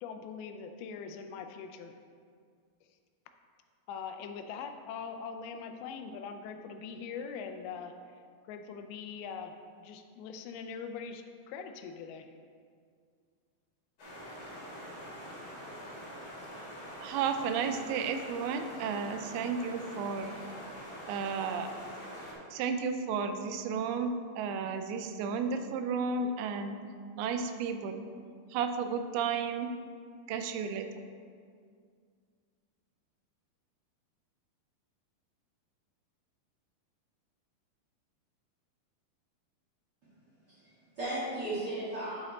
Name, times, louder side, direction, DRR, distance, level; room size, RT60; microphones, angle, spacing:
voice 1, 0.0-1.9 3.9-7.9 8.4-12.3, left 6 dB, 85° left, 7 dB, 2.4 m, -42 dB
sound 1, 14.0-22.3, equal, 40° left, 2.7 m, -45 dB
voice 2, 17.0-20.4 21.1-21.7 22.5-26.8 27.2-28.0 28.5-29.7 30.3-30.9, right 5 dB, 85° right, 8 dB, 2.5 m, -33 dB
voice 3, 40.5-42.3, right 1 dB, 45° right, -9 dB, 1.3 m, -36 dB
9.6 x 5.1 x 4.1 m, 2.1 s
omnidirectional pair, 4.4 m